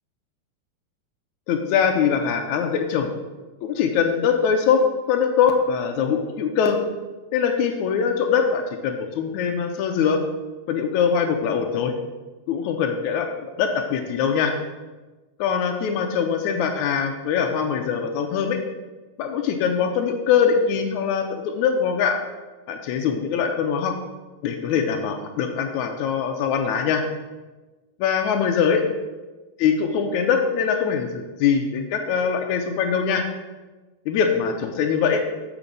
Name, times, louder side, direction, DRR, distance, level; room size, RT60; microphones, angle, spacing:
voice 1, 1.5-3.1 3.6-6.8 7.3-10.2 10.7-11.9 12.5-14.5 15.4-18.6 19.2-22.2 22.7-24.0 24.4-27.0 28.0-28.8 29.6-33.2 34.1-35.2, left 7 dB, 80° left, 5 dB, 2.0 m, -22 dB
7.2 x 6.0 x 5.2 m, 1.2 s
omnidirectional pair, 3.5 m